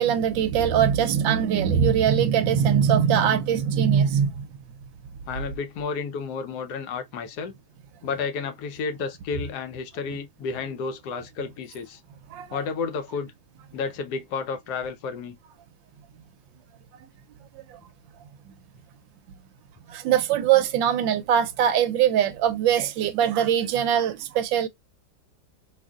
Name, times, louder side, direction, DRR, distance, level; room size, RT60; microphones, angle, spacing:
voice 1, 0.0-4.5 12.3-12.6 19.9-24.7, right 8 dB, 75° right, 1.2 m, -22 dB
voice 2, 5.3-7.5 8.0-12.0 12.5-13.3 13.7-15.4, left 5 dB, 65° left, 1.1 m, -31 dB
5.0 x 2.5 x 2.3 m
omnidirectional pair, 2.2 m